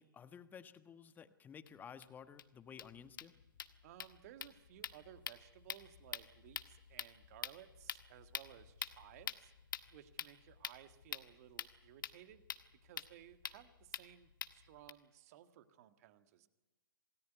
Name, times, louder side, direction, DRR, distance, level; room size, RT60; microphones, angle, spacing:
voice 1, 0.0-3.3, left 7 dB, 15° left, 12 dB, 1.4 m, -54 dB
sound 1, 1.7-1.8 2.0-2.1 2.4-2.5 2.7-14.9, left 7 dB, 65° left, 1.6 m, -47 dB
voice 2, 3.8-9.5 9.9-12.4 12.8-16.5, right 12 dB, 45° right, 10 dB, 1.8 m, -58 dB
27.5 x 18.5 x 9.3 m, 1.1 s
figure-of-eight pair, 115°, 12 cm